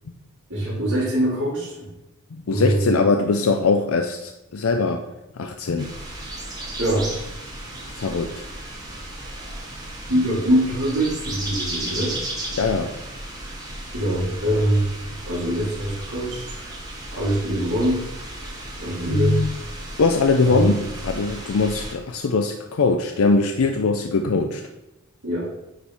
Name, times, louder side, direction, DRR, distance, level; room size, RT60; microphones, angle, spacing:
voice 1, 0.5-1.9 2.5-3.0 6.8-7.1 10.1-12.2 13.9-14.9 15.2-16.8 17.1-18.1 18.4-19.4 20.4-20.7 25.2-25.5, right 1 dB, 75° right, -10 dB, 2.1 m, -23 dB
voice 2, 2.3-5.0 5.4-5.9 8.0-8.5 12.5-12.9 19.1-19.5 20.0-24.6, left 4 dB, 70° left, 5 dB, 0.5 m, -21 dB
sound 1, 5.8-21.9, right 1 dB, 20° right, 1.4 m, -34 dB
9.1 x 3.5 x 4.3 m, 0.91 s
head